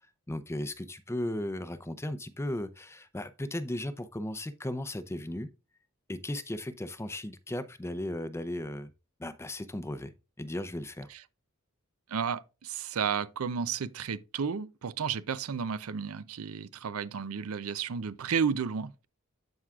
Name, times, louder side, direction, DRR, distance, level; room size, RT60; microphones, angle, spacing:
voice 1, 0.3-5.5 6.1-8.9 9.2-10.1 10.4-11.1, left 1 dB, 10° left, 0.5 m, -36 dB
voice 2, 12.1-19.1, right 6 dB, 85° right, 0.5 m, -32 dB
13.0 x 4.7 x 2.4 m
head